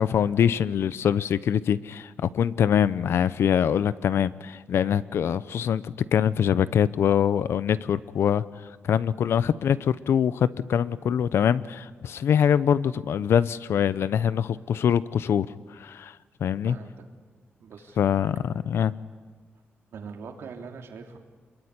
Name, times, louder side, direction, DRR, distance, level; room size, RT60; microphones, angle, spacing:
voice 1, 0.0-8.4 8.8-15.5 15.7-16.8 18.0-18.9, left 8 dB, 75° left, 17 dB, 0.8 m, -24 dB
voice 2, 16.6-17.1 17.6-18.0 19.9-21.2, right 5 dB, 85° right, 3 dB, 3.1 m, -42 dB
27.5 x 22.0 x 9.7 m, 1.4 s
wide cardioid pair, 170°, 4 cm